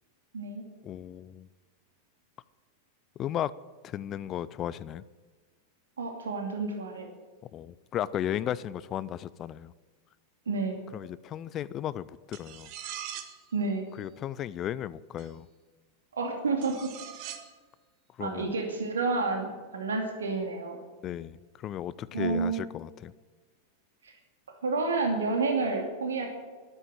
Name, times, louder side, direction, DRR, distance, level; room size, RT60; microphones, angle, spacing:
voice 1, 0.8-1.5 3.2-3.5 3.8-5.0 7.5-9.7 10.9-12.7 14.0-15.5 18.2-18.5 21.0-23.1, left 11 dB, 30° left, 19 dB, 0.5 m, -35 dB
voice 2, 6.0-7.1 10.5-10.8 13.5-13.8 16.1-16.8 18.2-20.8 22.1-22.6 24.6-26.3, right 3 dB, 70° right, 3 dB, 2.6 m, -29 dB
Knife Sounds, 12.3-13.4 15.2-15.3 16.6-17.5, right 10 dB, 45° right, 1.6 m, -41 dB
13.0 x 12.5 x 9.1 m, 1.4 s
figure-of-eight pair, 90°, 0 cm